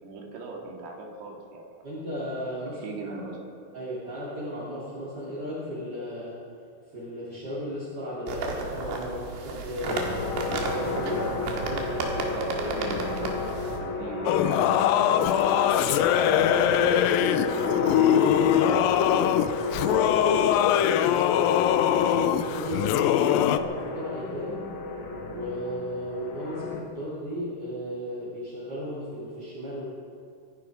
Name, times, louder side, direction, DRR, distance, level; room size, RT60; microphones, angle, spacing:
voice 1, 0.0-1.7 2.6-3.4 12.3-13.4 13.7-16.8 17.6-18.8 19.9-21.0, right 2 dB, 70° right, 0 dB, 4.1 m, -39 dB
voice 2, 1.8-3.1 3.7-6.4 6.9-12.1 17.7-18.2 21.8-24.7 25.3-29.9, equal, 25° right, -9 dB, 3.1 m, -35 dB
sound 1, 8.3-13.8, right 4 dB, 90° right, 3.8 m, -33 dB
sound 2, 9.8-26.8, left 3 dB, 55° left, 1.6 m, -32 dB
Singing / Musical instrument, 14.3-23.6, left 10 dB, 90° left, 2.0 m, -22 dB
25.0 x 10.5 x 5.1 m, 2.4 s
omnidirectional pair, 4.8 m